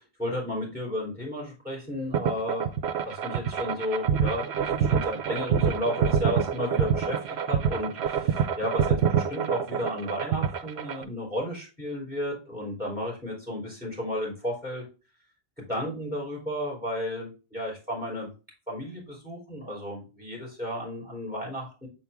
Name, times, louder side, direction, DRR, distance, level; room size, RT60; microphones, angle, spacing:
voice 1, 0.0-2.7 3.0-7.2 7.4-14.8 15.7-18.3 18.7-21.9, equal, 5° right, -4 dB, 3.3 m, -33 dB
sound 1, 2.1-11.0, right 7 dB, 80° right, 1.0 m, -26 dB
7.3 x 4.3 x 3.5 m, 0.31 s
omnidirectional pair, 1.1 m